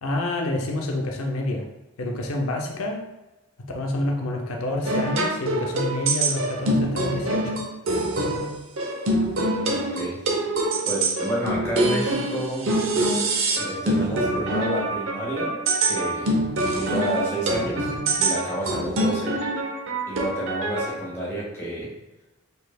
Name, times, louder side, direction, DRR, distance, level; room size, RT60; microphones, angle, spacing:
voice 1, 0.0-1.7 2.0-3.0 3.7-7.6, left 1 dB, 80° left, 1 dB, 0.6 m, -28 dB
sound 1, 4.8-21.0, right 1 dB, 65° right, 0.8 m, -25 dB
voice 2, 9.4-10.2 10.8-12.7 13.5-15.6 15.8-16.3 16.6-19.3 20.0-21.9, right 1 dB, 10° left, -6 dB, 1.5 m, -30 dB
5.3 x 4.0 x 2.3 m, 1.0 s
head